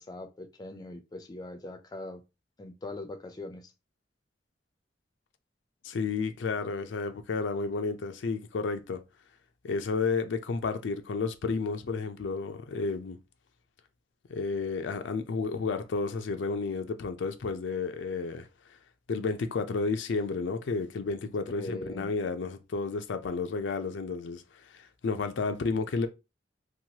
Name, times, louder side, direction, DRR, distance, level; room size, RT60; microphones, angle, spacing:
voice 1, 0.0-2.2 2.6-3.7 21.5-22.1, left 2 dB, 20° left, 0.4 m, -41 dB
voice 2, 5.8-9.0 9.6-13.2 14.3-18.5 19.1-24.4 24.7-26.1, left 4 dB, 90° left, 0.4 m, -31 dB
3.0 x 2.3 x 2.8 m
head